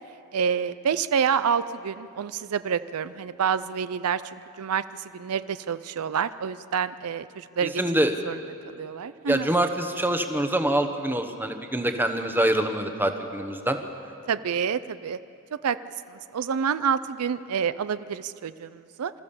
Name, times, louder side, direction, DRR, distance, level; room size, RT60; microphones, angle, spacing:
voice 1, 0.3-4.2 4.6-7.7 8.2-8.4 8.7-9.5 14.3-15.2 15.5-15.8 16.1-19.1, right 7 dB, 75° right, 14 dB, 0.5 m, -28 dB
voice 2, 7.6-8.1 9.3-13.8, right 1 dB, 10° right, 6 dB, 1.1 m, -25 dB
26.0 x 14.0 x 7.1 m, 2.6 s
head